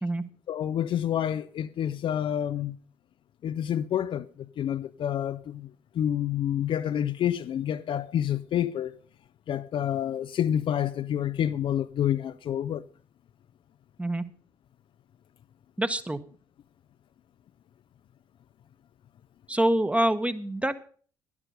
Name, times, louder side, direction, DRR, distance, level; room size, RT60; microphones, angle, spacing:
voice 1, 0.5-2.8 3.4-4.3 4.6-5.7 5.9-9.0 9.5-12.9, left 10 dB, 45° left, 0.5 m, -28 dB
voice 2, 15.8-16.2 19.5-20.7, right 1 dB, 10° right, 1.0 m, -25 dB
12.0 x 11.0 x 5.2 m
figure-of-eight pair, 45°, 12 cm